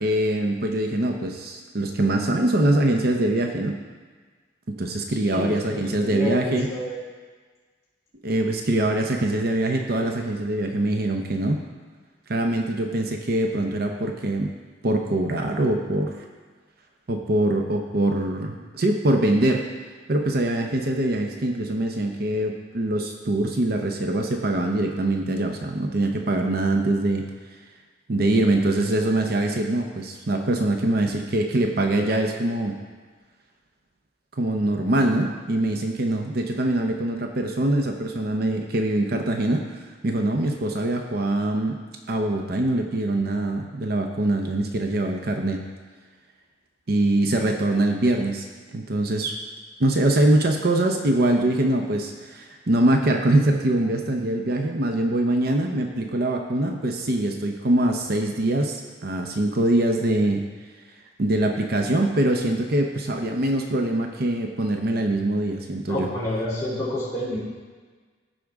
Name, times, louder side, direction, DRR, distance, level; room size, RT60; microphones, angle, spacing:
voice 1, 0.0-3.8 4.8-6.7 8.2-11.6 12.3-14.5 14.8-16.1 17.1-19.6 20.1-27.2 28.1-32.7 34.4-39.6 40.0-41.8 42.1-45.6 46.9-49.3 49.8-60.4 61.2-66.1, right 1 dB, 55° right, 3 dB, 0.7 m, -23 dB
voice 2, 5.1-7.0 65.9-67.4, left 1 dB, 15° left, -12 dB, 2.9 m, -29 dB
14.5 x 5.1 x 3.6 m, 1.5 s
head